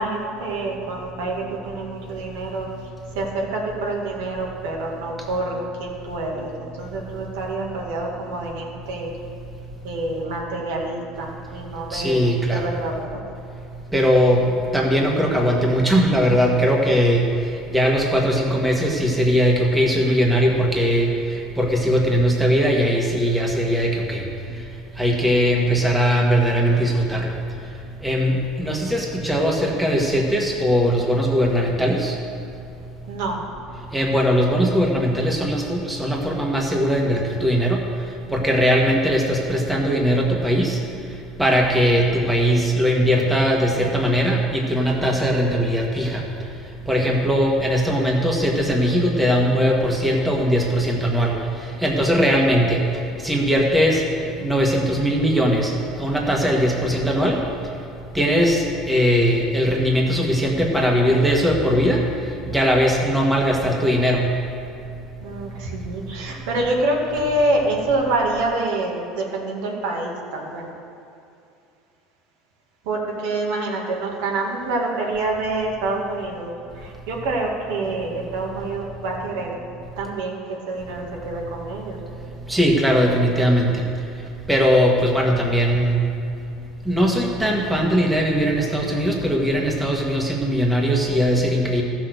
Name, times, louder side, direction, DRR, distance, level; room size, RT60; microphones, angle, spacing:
voice 1, 0.0-2.7 3.1-9.1 9.8-13.1 33.1-33.4 65.2-70.7 72.8-76.5 76.7-79.6 80.0-82.0, right 2 dB, 80° right, -1 dB, 2.1 m, -26 dB
voice 2, 11.9-12.7 13.9-14.5 14.7-17.2 17.7-24.2 25.0-27.3 28.0-32.1 33.9-37.8 38.3-40.8 41.4-46.2 46.9-51.4 51.8-52.8 53.2-54.0 54.4-55.7 56.0-57.4 58.1-62.0 62.4-64.2 82.5-83.8 84.5-85.9 86.8-91.8, equal, 5° right, -1 dB, 1.6 m, -20 dB
14.0 x 6.3 x 6.6 m, 2.5 s
supercardioid pair, 115°, 0 cm